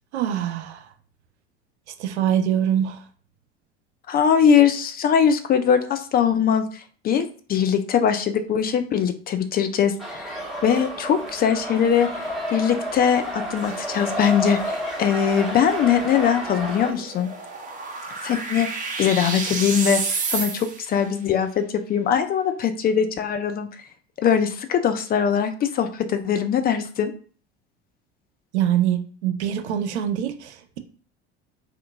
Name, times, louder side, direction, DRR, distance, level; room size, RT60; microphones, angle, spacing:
voice 1, 0.1-0.9 2.0-3.0 28.5-30.8, right 10 dB, 75° right, 8 dB, 0.6 m, -24 dB
voice 2, 4.1-10.3 10.6-17.3 18.2-18.7 19.0-23.7 24.2-27.1, left 8 dB, 30° left, 8 dB, 0.4 m, -21 dB
sound 1, 10.0-16.9, equal, ahead, 1.2 m, -31 dB
sound 2, 13.6-21.0, right 4 dB, 25° right, 0.9 m, -32 dB
2.8 x 2.4 x 3.4 m, 0.43 s
hypercardioid pair, 70°, 34 cm